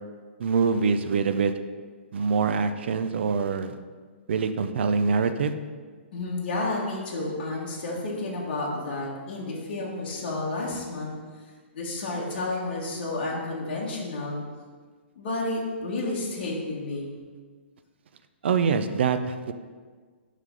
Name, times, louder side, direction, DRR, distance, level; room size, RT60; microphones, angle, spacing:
voice 1, 0.4-1.5 2.1-3.8 4.3-5.5 18.4-19.5, right 5 dB, 65° right, 10 dB, 0.4 m, -24 dB
voice 2, 6.1-11.4 11.7-14.4 15.1-17.1, left 2 dB, 50° left, -3 dB, 1.3 m, -31 dB
5.7 x 3.3 x 5.1 m, 1.5 s
hypercardioid pair, 165°, 7 cm